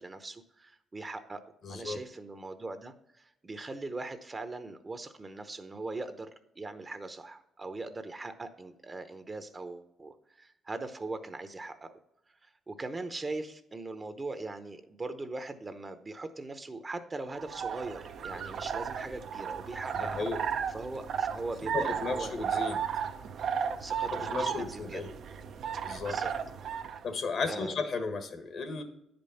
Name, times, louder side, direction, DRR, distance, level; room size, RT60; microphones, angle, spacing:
voice 1, 0.0-1.4 1.7-6.3 6.6-11.9 12.4-20.3 20.7-22.3 23.8-25.0 26.1-26.3 27.5-27.7, right 2 dB, 25° right, 9 dB, 0.8 m, -40 dB
voice 2, 1.6-2.0 19.9-20.4 21.7-22.8 24.1-25.1 25.8-26.2 27.0-28.8, left 4 dB, 60° left, 7 dB, 1.4 m, -34 dB
sound 1, 17.3-27.0, right 7 dB, 65° right, 0.7 m, -34 dB
10.0 x 5.2 x 5.6 m, 0.84 s
cardioid pair, 90°, 0 cm